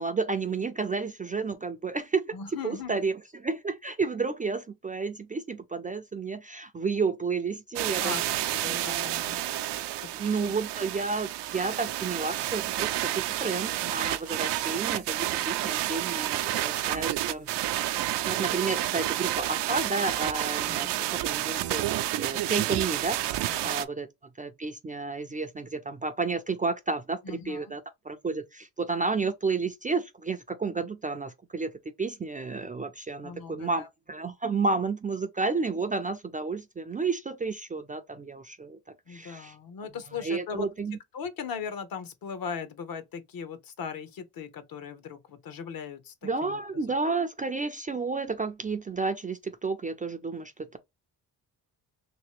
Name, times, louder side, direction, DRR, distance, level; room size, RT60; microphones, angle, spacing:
voice 1, 0.0-2.3 2.6-8.1 8.7-9.1 10.2-17.5 18.2-24.1 24.4-31.7 32.0-38.8 39.1-39.5 40.1-41.0 46.2-50.8, right 4 dB, 20° right, 0.3 m, -31 dB
voice 2, 2.3-3.0 8.0-9.4 10.3-10.5 20.8-21.0 23.5-23.7 27.2-27.8 33.2-33.9 39.1-40.7 41.1-47.0, left 6 dB, 60° left, 0.9 m, -39 dB
sound 1, 7.8-23.9, right 14 dB, 90° right, 0.5 m, -30 dB
3.1 x 2.9 x 3.0 m
cardioid pair, 105°, 41 cm